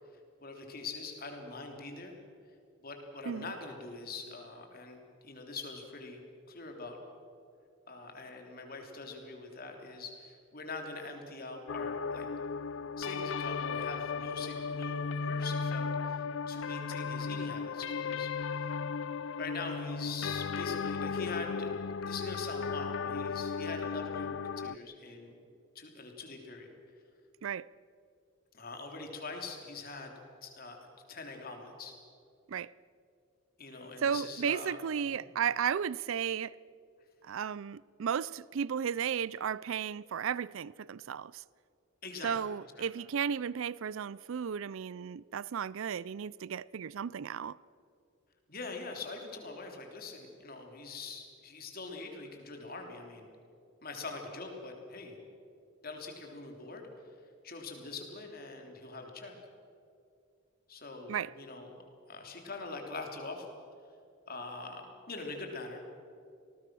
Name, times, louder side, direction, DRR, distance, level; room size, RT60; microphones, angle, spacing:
voice 1, 0.4-2.2 2.8-6.2 6.5-7.0 7.9-12.3 13.0-18.8 19.4-21.8 22.0-25.3 25.7-26.7 28.5-30.1 30.4-30.8 31.1-31.9 33.6-34.8 35.0-35.2 42.0-42.4 42.8-42.9 48.5-53.3 53.8-55.2 55.8-56.9 57.4-59.3 60.7-61.7 62.1-63.5 64.3-65.8, left 3 dB, 45° left, 3.4 m, -43 dB
sound 1, 11.7-24.8, left 5 dB, 65° left, 0.4 m, -35 dB
voice 2, 34.0-36.6 37.2-41.4 42.2-47.6 61.1-61.3, right 7 dB, 75° right, 0.4 m, -34 dB
27.5 x 19.5 x 6.2 m
head